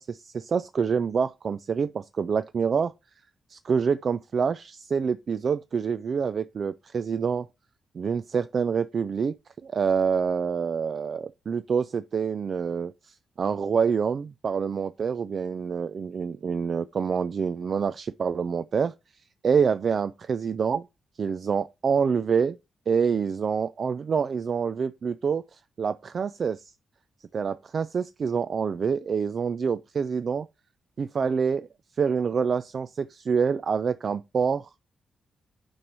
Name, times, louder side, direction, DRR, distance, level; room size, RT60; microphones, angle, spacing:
voice 1, 0.0-2.9 3.5-7.5 7.9-9.4 9.6-18.9 19.4-20.8 21.2-22.6 22.9-26.7 27.3-30.5 31.0-31.7 32.0-34.7, right 6 dB, 50° right, 0.3 m, -26 dB
8.8 x 3.1 x 5.4 m
cardioid pair, 115°, 0 cm